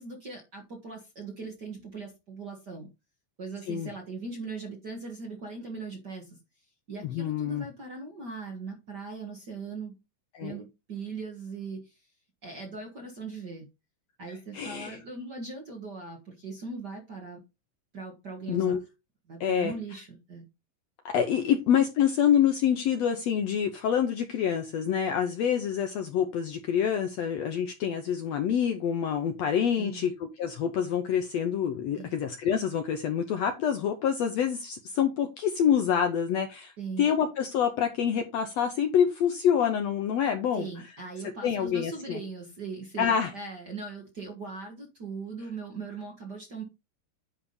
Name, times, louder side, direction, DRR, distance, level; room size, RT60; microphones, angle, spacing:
voice 1, 0.0-2.9 3.4-6.4 6.9-10.0 10.4-12.0 12.4-13.7 14.2-17.4 17.9-18.8 19.3-20.4 29.8-30.1 32.0-32.2 36.8-37.1 40.5-46.6, right 4 dB, 45° right, 1.3 m, -39 dB
voice 2, 7.0-7.7 10.3-10.6 14.5-15.0 18.5-18.8 19.4-19.7 21.0-36.7 37.0-40.7 41.4-42.2 43.0-43.3, left 8 dB, 75° left, 1.6 m, -26 dB
9.8 x 3.5 x 5.4 m
omnidirectional pair, 3.8 m